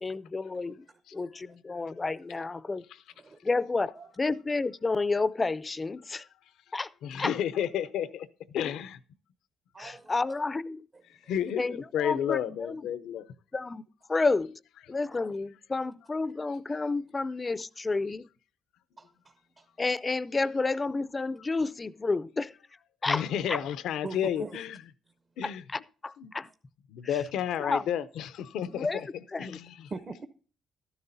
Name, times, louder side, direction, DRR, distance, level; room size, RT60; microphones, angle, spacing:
voice 1, 0.0-0.8 1.1-2.8 3.4-3.9 4.2-6.2 6.7-6.9 7.2-7.4 9.8-10.9 11.6-12.8 13.5-13.8 14.1-14.6 14.9-18.3 19.8-22.5 23.0-23.6 25.4-26.5 27.0-27.2 27.6-27.8 28.7-29.0 29.3-29.6, left 3 dB, 25° left, 0.4 m, -30 dB
voice 2, 7.0-9.0 11.3-13.3 23.1-24.8 25.4-25.6 26.2-26.3 26.9-29.1 29.4-29.7, left 9 dB, 80° left, 0.6 m, -31 dB
voice 3, 9.7-10.2 11.2-11.3 19.0-19.6 24.0-24.6 29.9-30.3, right 3 dB, 35° right, 0.8 m, -41 dB
12.5 x 11.0 x 2.6 m
cardioid pair, 90°, 0 cm